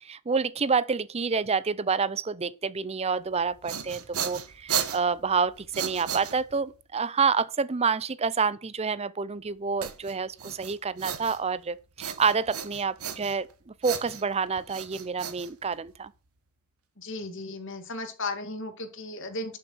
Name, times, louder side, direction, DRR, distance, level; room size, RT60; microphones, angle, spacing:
voice 1, 0.0-16.1, right 5 dB, 30° right, 0.5 m, -28 dB
sound 1, 3.4-6.8 9.8-11.6 12.0-13.5 13.8-16.1, right 8 dB, 85° right, 1.4 m, -35 dB
voice 2, 17.0-19.6, left 2 dB, 60° left, 2.2 m, -35 dB
11.5 x 6.6 x 6.0 m
head